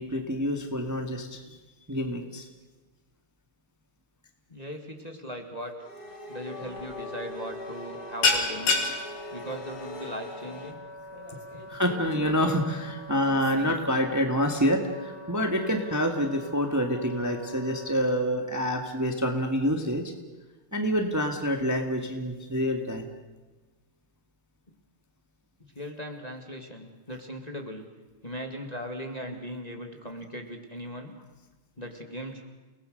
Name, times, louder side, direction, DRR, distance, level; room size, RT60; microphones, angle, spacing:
voice 1, 0.0-1.4 1.9-2.5 11.7-20.0 20.7-23.0, equal, 10° right, 4 dB, 1.7 m, -27 dB
voice 2, 4.5-5.7 6.3-8.8 9.3-10.8 11.3-11.6 24.7-24.8 25.7-27.9 28.2-31.1 31.8-32.4, equal, 20° left, 3 dB, 2.0 m, -39 dB
sound 1, 5.8-10.7, left 2 dB, 45° left, 2.7 m, -42 dB
Wind instrument woodwind instrument, 6.4-18.0, equal, 60° left, 3.7 m, -44 dB
sound 2, 6.6-6.9 7.2-7.5 7.7-14.6, left 3 dB, 80° left, 3.7 m, -31 dB
30.0 x 19.0 x 6.6 m, 1.2 s
omnidirectional pair, 2.4 m